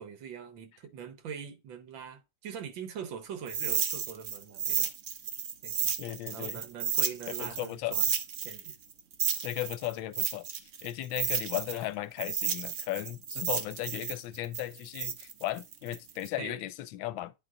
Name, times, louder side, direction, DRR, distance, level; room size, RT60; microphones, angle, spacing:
voice 1, 0.0-4.9 5.6-5.9 6.3-8.1 8.4-8.7 11.3-11.5 16.4-16.6, right 7 dB, 80° right, 1.8 m, -43 dB
sound 1, 3.5-7.7 7.9-11.8 12.2-16.3, right 7 dB, 55° right, 0.9 m, -32 dB
voice 2, 6.0-6.6 7.3-8.0 9.4-10.5 10.8-17.3, left 15 dB, 90° left, 1.4 m, -36 dB
9.5 x 4.1 x 3.7 m
omnidirectional pair, 2.1 m